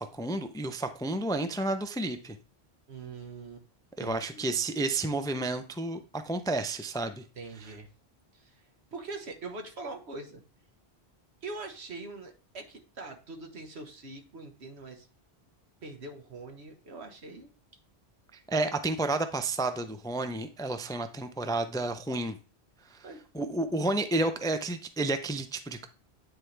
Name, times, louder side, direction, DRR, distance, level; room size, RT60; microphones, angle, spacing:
voice 1, 0.0-2.4 4.0-7.2 18.5-22.4 22.9-23.0 23.3-25.9, right 2 dB, 5° left, 9 dB, 0.4 m, -31 dB
voice 2, 2.9-3.6 4.0-4.6 7.3-7.9 8.3-8.6 8.9-10.4 11.4-15.1 15.8-17.5 23.0-23.2, right 3 dB, 80° right, 5 dB, 1.6 m, -43 dB
9.5 x 4.6 x 3.3 m, 0.36 s
omnidirectional pair, 1.1 m